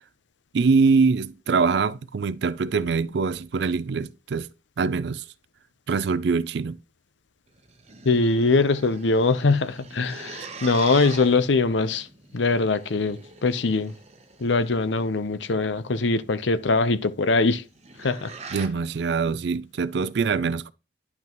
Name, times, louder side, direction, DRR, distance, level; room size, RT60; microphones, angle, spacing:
voice 1, 0.5-4.5 4.8-5.2 5.9-6.8 18.5-20.7, right 4 dB, 65° right, 0.4 m, -23 dB
sound 1, 7.5-15.1 17.5-18.7, right 4 dB, 35° right, 0.9 m, -43 dB
voice 2, 8.0-12.1 12.3-13.9 14.4-17.6 18.0-18.3, left 3 dB, 80° left, 0.7 m, -22 dB
10.5 x 5.8 x 3.0 m
head